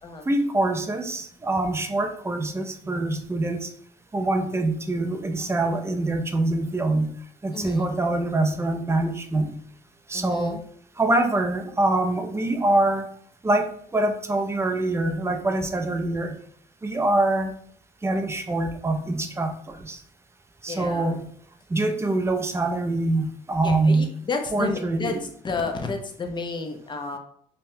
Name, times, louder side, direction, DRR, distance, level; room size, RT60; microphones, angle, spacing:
voice 1, 0.3-3.7 4.1-7.1 7.4-9.6 10.1-10.6 11.0-13.1 13.4-16.4 16.8-17.5 18.0-20.0 20.6-21.2 21.7-24.1 24.5-25.2, right 2 dB, 15° right, 6 dB, 0.4 m, -24 dB
voice 2, 7.5-7.9 10.1-10.6 20.7-21.2 23.6-25.2 25.4-27.2, left 3 dB, 25° left, 4 dB, 0.6 m, -31 dB
5.4 x 2.2 x 2.6 m, 0.63 s
cardioid pair, 110°, 17 cm